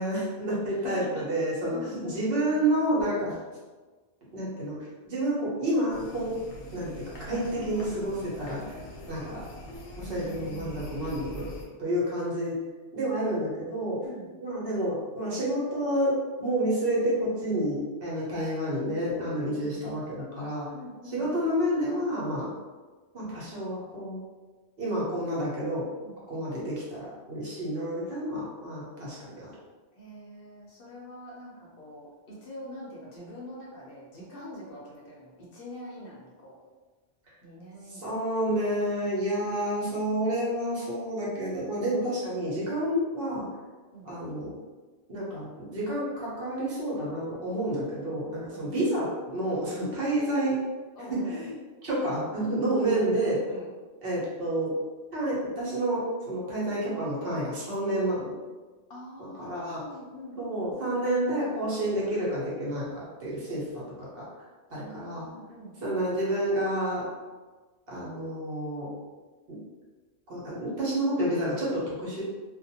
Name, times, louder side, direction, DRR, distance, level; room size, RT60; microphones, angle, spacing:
voice 1, 0.0-3.4 4.3-4.8 5.0-6.4 6.7-8.8 9.1-9.4 10.0-11.5 11.8-12.6 12.9-14.0 14.4-20.7 21.0-22.5 23.1-24.2 24.8-25.9 26.3-29.5 37.3-37.4 37.9-43.5 44.0-44.5 45.1-50.6 51.1-51.5 51.8-53.4 54.0-54.7 55.1-58.3 59.4-59.8 60.4-64.4 64.7-65.3 65.8-67.0 67.9-68.9 69.5-69.6 70.3-72.2, right 1 dB, 60° right, -6 dB, 1.0 m, -29 dB
voice 2, 0.7-1.3 1.7-2.6 10.0-11.0 14.0-14.3 19.5-19.8 20.7-21.3 22.4-22.5 26.0-26.4 29.9-36.6 37.4-38.1 43.9-44.1 48.5-48.9 50.9-51.4 52.8-53.0 53.5-53.7 58.9-60.4 60.6-61.0 64.8-65.8, equal, 60° left, -5 dB, 0.8 m, -45 dB
sound 1, 5.9-11.6, equal, 85° left, 1.0 m, -43 dB
2.4 x 2.1 x 2.7 m, 1.3 s
omnidirectional pair, 1.2 m